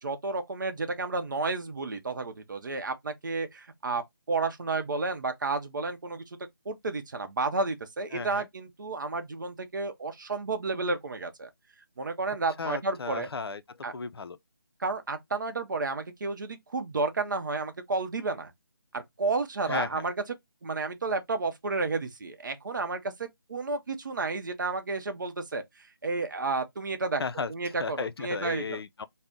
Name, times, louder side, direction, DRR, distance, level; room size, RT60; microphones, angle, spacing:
voice 1, 0.0-4.0 4.3-6.4 6.7-11.5 12.0-13.3 13.8-13.9 14.8-18.5 18.9-20.1 20.6-25.6 26.0-27.2 27.5-28.8, right 3 dB, 55° right, 0.6 m, -31 dB
voice 2, 8.1-8.5 12.6-14.4 19.7-20.1 27.2-29.0, left 5 dB, 85° left, 0.4 m, -35 dB
2.6 x 2.1 x 3.4 m
figure-of-eight pair, 165°, 13 cm